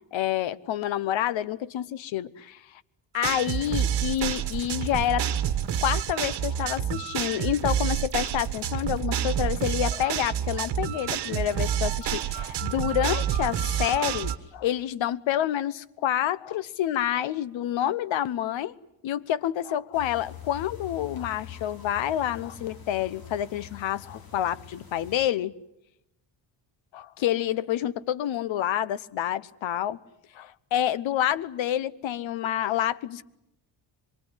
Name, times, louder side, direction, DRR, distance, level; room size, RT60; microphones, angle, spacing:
voice 1, 0.1-2.8 3.1-5.3 5.8-18.7 19.0-25.5 26.9-30.0 30.3-33.2, left 11 dB, 75° left, 1.0 m, -28 dB
sound 1, 3.2-14.4, right 9 dB, 60° right, 1.6 m, -28 dB
sound 2, 19.9-25.2, left 8 dB, 50° left, 4.0 m, -44 dB
25.5 x 23.0 x 9.9 m
cardioid pair, 160°, 46 cm